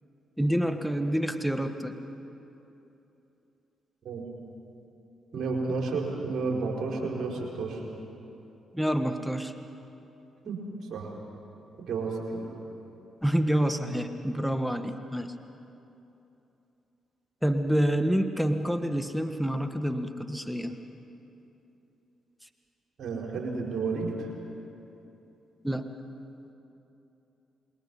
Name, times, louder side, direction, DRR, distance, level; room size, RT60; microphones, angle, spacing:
voice 1, 0.4-1.9 8.7-9.5 13.2-15.3 17.4-20.7 25.6-25.8, equal, ahead, 7 dB, 1.5 m, -27 dB
voice 2, 5.3-7.8 10.4-10.6 10.9-11.1 11.9-12.5 23.0-24.3, right 4 dB, 60° right, -1 dB, 4.6 m, -31 dB
27.5 x 22.0 x 5.5 m, 2.9 s
hypercardioid pair, 40°, 0 cm